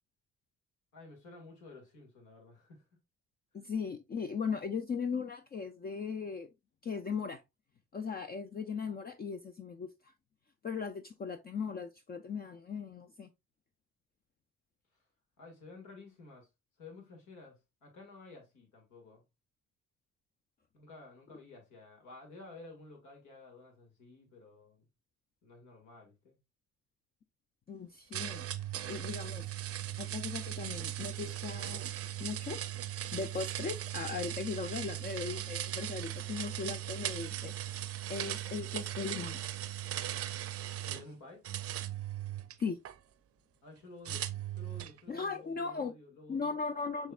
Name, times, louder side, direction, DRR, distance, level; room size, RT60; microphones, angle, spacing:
voice 1, 0.9-2.8 15.4-16.5 16.8-19.2 20.7-24.8 25.4-26.4 40.8-41.4 43.6-46.6 47.0-47.1, left 3 dB, 85° left, 2.2 m, -53 dB
voice 2, 3.5-6.5 6.8-7.4 7.9-10.1 10.6-13.3 27.7-28.5 28.9-29.5 30.0-31.9 32.2-32.6 33.1-39.4 42.6-42.8 45.1-45.9 46.3-47.1, left 5 dB, 30° left, 0.4 m, -38 dB
sound 1, 28.1-41.1 41.4-42.9 44.0-45.0, right 12 dB, 50° right, 0.5 m, -38 dB
6.3 x 3.5 x 2.3 m
cardioid pair, 90°, 30 cm